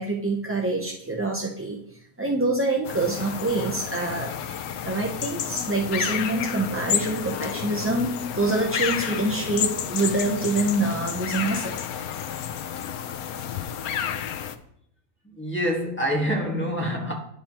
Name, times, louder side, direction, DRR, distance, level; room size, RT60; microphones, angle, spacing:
voice 1, 0.0-1.8 2.2-4.3 4.8-11.8, right 2 dB, 15° right, 0.4 m, -26 dB
sound 1, 2.8-14.5, left 9 dB, 90° left, 1.1 m, -31 dB
voice 2, 15.2-17.2, equal, 10° left, 1.5 m, -26 dB
10.0 x 7.2 x 2.9 m
omnidirectional pair, 1.5 m